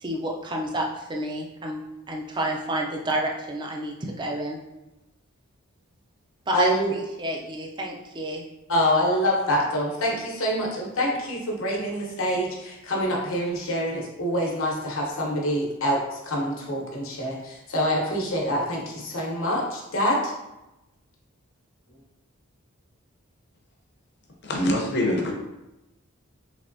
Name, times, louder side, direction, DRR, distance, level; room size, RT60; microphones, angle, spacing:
voice 1, 0.0-1.8 2.1-4.6 6.5-8.4, right 1 dB, 20° right, 0 dB, 0.4 m, -30 dB
voice 2, 6.5-6.9 8.7-20.3, equal, 80° left, -1 dB, 0.9 m, -26 dB
voice 3, 24.4-25.3, left 1 dB, 55° left, 0 dB, 0.6 m, -24 dB
3.4 x 3.0 x 2.6 m, 0.97 s
head